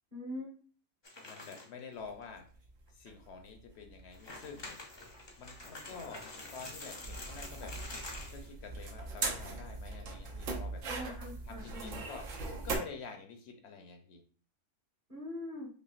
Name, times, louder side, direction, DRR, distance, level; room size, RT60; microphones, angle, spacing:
voice 1, 0.1-0.5 10.9-12.0 15.1-15.7, left 1 dB, 45° right, -5 dB, 1.6 m, -42 dB
sound 1, 1.0-1.8 2.2-2.3 2.9-3.0 4.0-8.5, left 2 dB, 30° left, 0.5 m, -47 dB
voice 2, 1.3-2.5 2.9-4.8 5.4-6.3 6.5-7.8 8.3-10.8 11.4-12.3 12.6-14.2, left 5 dB, 65° left, 4 dB, 0.8 m, -48 dB
sound 2, 2.0-12.8, right 3 dB, 85° right, 1.2 m, -41 dB
5.5 x 2.1 x 2.4 m, 0.42 s
omnidirectional pair, 1.3 m